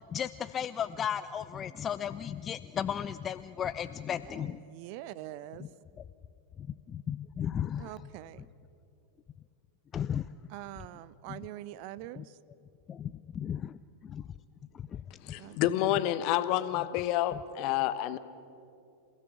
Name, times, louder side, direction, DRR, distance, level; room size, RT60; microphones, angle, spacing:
voice 1, 0.1-4.6 5.6-5.7 6.9-7.9 9.9-10.3 12.2-12.3 12.9-13.7 14.0-14.2 14.9-15.0, left 9 dB, 25° left, 14 dB, 0.5 m, -34 dB
voice 2, 4.2-5.7 7.8-8.5 10.5-12.4 15.4-15.6, right 15 dB, 45° right, 18 dB, 0.6 m, -44 dB
voice 3, 15.2-18.2, left 13 dB, 45° left, 14 dB, 1.1 m, -29 dB
28.0 x 16.5 x 8.4 m, 2.7 s
figure-of-eight pair, 90°, 0 cm